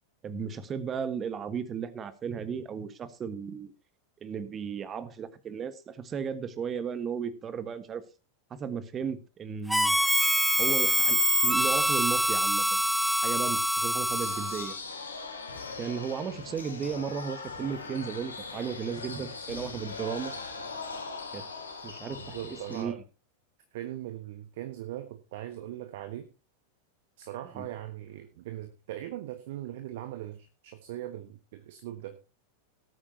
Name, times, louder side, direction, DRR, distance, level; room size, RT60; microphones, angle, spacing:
voice 1, 0.2-3.7 4.2-8.0 8.6-10.0 10.6-11.2 11.4-12.8 13.2-14.7 15.8-20.3 21.3-21.4 21.8-22.9 27.5-27.6, right 6 dB, 25° right, 13 dB, 1.5 m, -35 dB
Harmonica, 9.7-14.7, equal, ahead, 0.7 m, -25 dB
sound 1, 14.1-22.8, left 4 dB, 75° left, 2.8 m, -40 dB
voice 2, 22.2-23.0 23.7-26.3 27.2-32.2, right 13 dB, 50° right, 8 dB, 1.4 m, -40 dB
18.5 x 8.8 x 2.9 m, 0.30 s
figure-of-eight pair, 90°, 0 cm